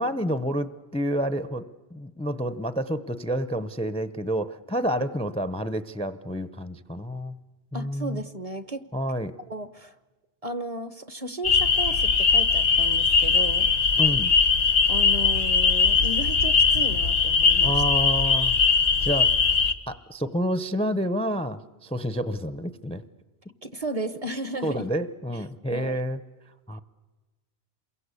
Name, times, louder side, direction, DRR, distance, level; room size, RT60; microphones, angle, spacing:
voice 1, 0.0-7.4 7.7-8.2 8.9-9.4 14.0-14.3 17.6-18.6 19.0-19.3 19.9-23.0 24.6-26.2 26.7-26.8, equal, 5° left, 13 dB, 0.7 m, -29 dB
voice 2, 7.7-8.8 9.5-9.9 10.4-13.7 14.9-17.8 23.6-24.9 25.7-26.0, right 1 dB, 35° right, 12 dB, 1.0 m, -34 dB
sound 1, 11.4-19.7, left 5 dB, 85° left, 1.6 m, -20 dB
28.0 x 22.5 x 8.3 m, 1.2 s
omnidirectional pair, 1.1 m